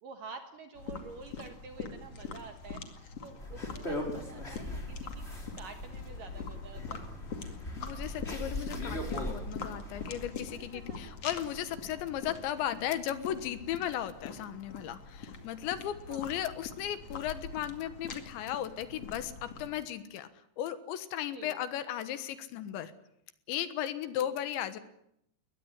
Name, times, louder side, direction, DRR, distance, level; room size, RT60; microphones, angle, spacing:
voice 1, 0.0-5.3 5.5-7.0 10.5-11.0 16.1-16.3 21.3-21.6, right 4 dB, 65° right, 7 dB, 2.3 m, -48 dB
sound 1, 0.7-19.8, left 5 dB, 40° left, 2.5 m, -44 dB
sound 2, 3.4-10.3, left 1 dB, 15° left, 3.8 m, -39 dB
sound 3, 6.7-12.3, right 1 dB, 20° right, 7.1 m, -53 dB
voice 2, 7.8-20.3 20.6-22.9 23.5-24.8, left 11 dB, 75° left, 12 dB, 3.4 m, -36 dB
22.0 x 19.5 x 9.8 m, 0.76 s
omnidirectional pair, 5.5 m